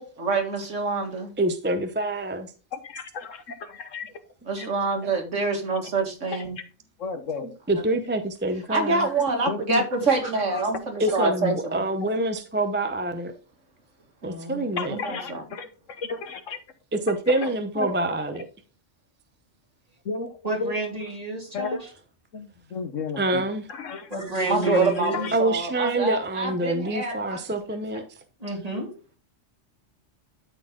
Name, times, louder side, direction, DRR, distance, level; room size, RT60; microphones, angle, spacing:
voice 1, 0.2-1.3 4.5-6.6 8.7-11.8 14.2-15.4 24.5-27.4 27.9-28.0, right 3 dB, 75° right, 2.4 m, -26 dB
voice 2, 1.4-2.5 5.0-5.1 7.7-9.1 11.0-13.3 14.2-15.0 16.9-18.5 23.2-23.6 25.3-28.0, right 1 dB, 10° right, 0.6 m, -26 dB
voice 3, 2.7-4.1 4.6-4.7 7.0-7.5 9.5-9.9 10.7-10.8 14.8-16.6 17.3-18.2 20.0-20.7 21.5-21.9 22.3-24.2 24.6-25.4, left 4 dB, 85° left, 1.5 m, -34 dB
voice 4, 10.2-10.6 20.4-21.8 24.1-25.3 28.4-28.9, right 2 dB, 30° right, 2.9 m, -30 dB
12.0 x 4.3 x 3.7 m
omnidirectional pair, 1.3 m